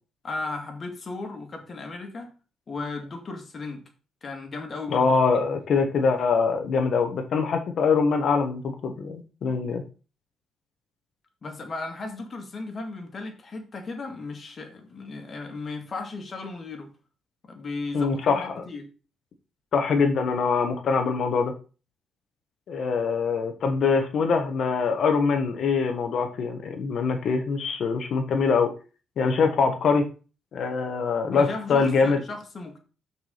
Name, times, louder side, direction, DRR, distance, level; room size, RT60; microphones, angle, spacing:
voice 1, 0.2-2.3 2.7-3.8 4.2-5.6 11.4-16.9 17.4-18.9 31.3-32.8, left 3 dB, 40° left, 3 dB, 2.2 m, -36 dB
voice 2, 4.9-9.8 17.9-18.6 19.7-21.5 22.7-28.7 29.2-30.1 30.5-32.2, left 5 dB, 60° left, 5 dB, 1.2 m, -23 dB
6.1 x 4.7 x 5.6 m, 0.35 s
cardioid pair, 90°, 0 cm